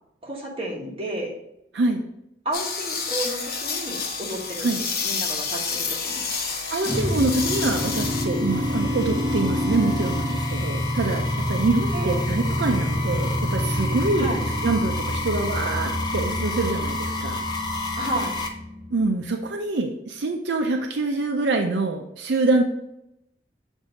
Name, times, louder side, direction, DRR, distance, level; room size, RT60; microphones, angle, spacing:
voice 1, 0.2-1.3 2.4-4.7 5.0-6.3 11.9-12.2 14.1-14.4 18.0-18.3, right 1 dB, 30° right, -3 dB, 1.4 m, -32 dB
sound 1, 2.5-8.2, left 5 dB, 55° left, 0.9 m, -29 dB
sound 2, 5.1-18.5, left 2 dB, 25° left, 0.7 m, -33 dB
voice 2, 6.7-14.4 14.6-17.4 18.9-22.6, right 3 dB, 75° right, 3 dB, 0.5 m, -25 dB
sound 3, 6.8-19.1, equal, 10° right, 1.1 m, -27 dB
7.1 x 2.7 x 5.1 m, 0.83 s
head